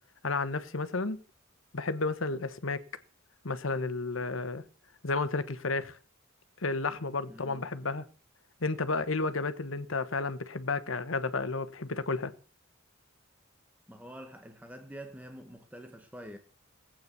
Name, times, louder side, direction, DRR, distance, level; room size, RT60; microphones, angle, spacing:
voice 1, 0.2-1.2 1.7-2.8 3.4-4.6 5.0-6.0 6.6-8.0 8.6-12.3, left 3 dB, 75° left, 1.2 m, -32 dB
voice 2, 7.3-7.7 13.9-16.4, equal, 5° right, 1.4 m, -46 dB
17.5 x 8.8 x 6.8 m
head